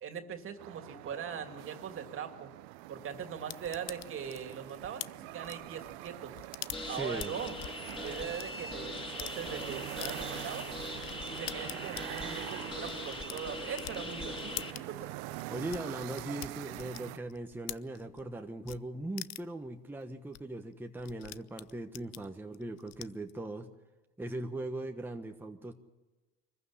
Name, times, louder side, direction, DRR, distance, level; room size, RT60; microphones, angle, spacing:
voice 1, 0.0-2.5 2.9-6.3 6.9-7.6 8.0-10.7 11.3-15.0, right 7 dB, 45° right, 6 dB, 2.6 m, -41 dB
sound 1, 0.6-17.2, right 19 dB, 80° right, 0.8 m, -44 dB
sound 2, 3.5-8.4 8.9-9.4 10.0-10.1 10.6-10.7 11.0-18.3 18.6-18.8 19.2-19.6 20.0-20.1 20.3-20.4 20.6-23.3, left 17 dB, 60° left, 0.7 m, -45 dB
sound 3, 6.7-14.7, left 2 dB, 15° left, 6.0 m, -41 dB
voice 2, 6.8-7.3 15.5-23.7 24.2-25.7, right 1 dB, 5° right, 3 dB, 1.3 m, -39 dB
24.0 x 15.0 x 10.0 m, 1.1 s
supercardioid pair, 95°, 29 cm